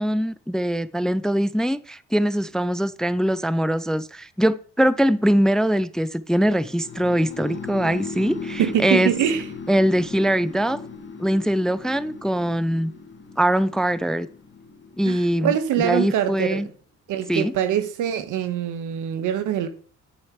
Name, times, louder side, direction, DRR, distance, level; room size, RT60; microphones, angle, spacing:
voice 1, 0.0-9.1 9.7-10.8 11.2-12.9 13.4-14.3 15.0-16.7 17.3-17.5, equal, ahead, 0.4 m, -22 dB
sound 1, 6.4-16.4, left 4 dB, 40° left, 1.9 m, -38 dB
voice 2, 8.6-9.5 15.0-16.7 17.1-19.7, right 10 dB, 85° right, 1.2 m, -24 dB
10.0 x 6.4 x 4.6 m
cardioid pair, 90°, 30 cm